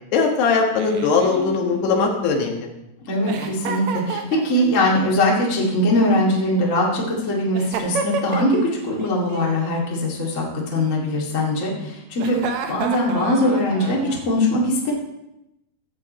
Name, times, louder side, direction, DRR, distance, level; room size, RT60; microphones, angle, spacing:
voice 1, 0.1-2.7, left 4 dB, 85° left, 2 dB, 3.6 m, -20 dB
Giggle, 0.7-2.6 3.3-4.9 5.9-6.9 7.5-8.7 9.0-9.5 10.8-11.5 12.2-14.2, right 6 dB, 85° right, 1.5 m, -31 dB
voice 2, 3.0-14.9, left 1 dB, 30° left, -3 dB, 1.6 m, -21 dB
14.5 x 8.5 x 4.3 m, 0.87 s
omnidirectional pair, 4.6 m